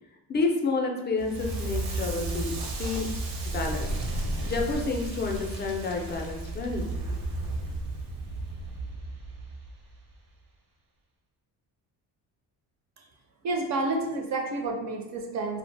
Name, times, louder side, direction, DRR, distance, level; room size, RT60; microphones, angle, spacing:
voice 1, 0.3-3.1 3.4-3.9 4.5-7.1, left 3 dB, 25° left, 2 dB, 0.4 m, -30 dB
Crackle, 1.2-10.1, right 2 dB, 80° right, 0.8 m, -33 dB
voice 2, 13.4-15.6, right 2 dB, 45° right, 2 dB, 0.4 m, -30 dB
2.4 x 2.0 x 3.2 m, 0.98 s
cardioid pair, 115°, 40 cm